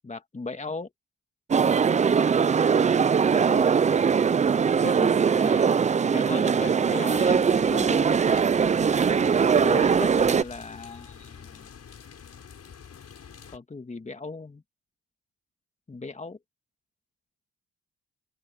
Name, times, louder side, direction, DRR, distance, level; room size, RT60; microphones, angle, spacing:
voice 1, 0.0-0.9 3.2-3.7 4.8-5.7 6.0-8.0 9.6-11.7 13.5-14.6 15.9-16.4, left 3 dB, 25° left, 2.0 m, -37 dB
sound 1, 1.5-10.4, right 6 dB, 25° right, 0.4 m, -21 dB
sound 2, 7.1-13.6, left 7 dB, 55° left, 6.5 m, -46 dB
open air
cardioid pair, 100°, 30 cm